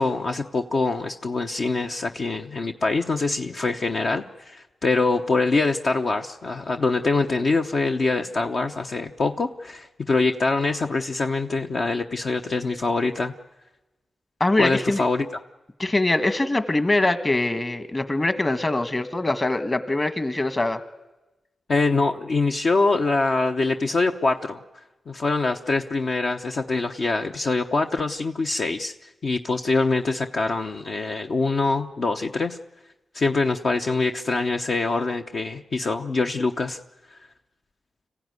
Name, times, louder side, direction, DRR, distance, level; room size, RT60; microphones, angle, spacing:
voice 1, 0.0-13.3 14.6-15.3 21.7-24.6 25.1-28.9 29.2-32.6 33.1-36.8 37.1-37.2, left 3 dB, 60° left, 4 dB, 0.8 m, -24 dB
voice 2, 14.4-15.0 15.8-20.8, left 2 dB, 30° left, 10 dB, 1.5 m, -23 dB
26.0 x 15.0 x 9.6 m, 1.1 s
cardioid pair, 65°, 0 cm